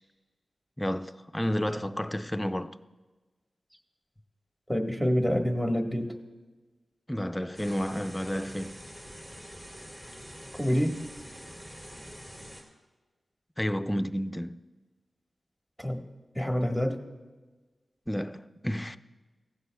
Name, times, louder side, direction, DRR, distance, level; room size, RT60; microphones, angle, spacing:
voice 1, 0.8-2.8 7.1-8.8 13.6-14.6 18.1-19.0, equal, 10° left, 0.5 m, -31 dB
voice 2, 4.7-6.1 10.5-11.0 15.8-16.0 16.3-17.0, equal, 5° right, 1.5 m, -27 dB
sound 1, 7.5-12.6, equal, 25° right, 3.0 m, -45 dB
16.5 x 15.0 x 2.3 m
cardioid pair, 55°, 0 cm